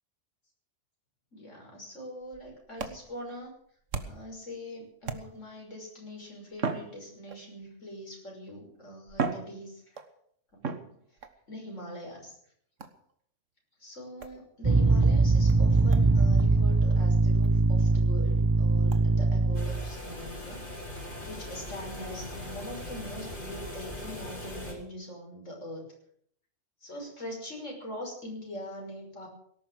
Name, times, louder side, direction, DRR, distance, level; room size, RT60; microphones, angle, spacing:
voice 1, 1.3-3.5 4.0-9.8 11.5-12.3 13.8-20.6 21.2-25.9 26.8-29.3, left 1 dB, 90° left, 0 dB, 6.4 m, -42 dB
sound 1, 2.2-4.4 5.0-5.6 6.5-7.6 8.5-8.6 9.1-10.2 10.6-11.4 12.8-13.1 14.2-14.4 15.0-15.1 15.5-15.6 15.9-16.1 16.4-16.5 16.9-17.0 17.4-17.5 17.9-18.0 18.9-19.0, right 5 dB, 85° right, 1.8 m, -37 dB
sound 2, 14.6-20.0, right 3 dB, 25° right, 0.5 m, -22 dB
sound 3, 19.5-24.7, left 1 dB, 45° left, 4.8 m, -40 dB
18.5 x 11.5 x 6.5 m, 0.65 s
omnidirectional pair, 1.3 m